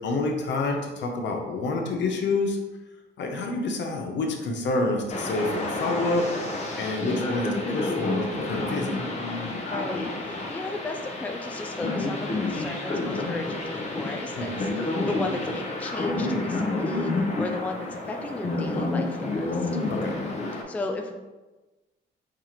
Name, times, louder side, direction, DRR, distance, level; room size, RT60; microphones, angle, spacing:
voice 1, 0.0-2.6 3.2-6.3 6.8-8.9 14.4-14.7 19.9-20.2, left 2 dB, 65° left, 2 dB, 0.7 m, -28 dB
sound 1, 5.1-20.6, left 2 dB, 35° left, 0.8 m, -29 dB
voice 2, 9.7-19.7 20.7-21.2, left 2 dB, 10° left, 3 dB, 0.3 m, -35 dB
4.7 x 2.4 x 2.9 m, 1.2 s
cardioid pair, 90°, 20 cm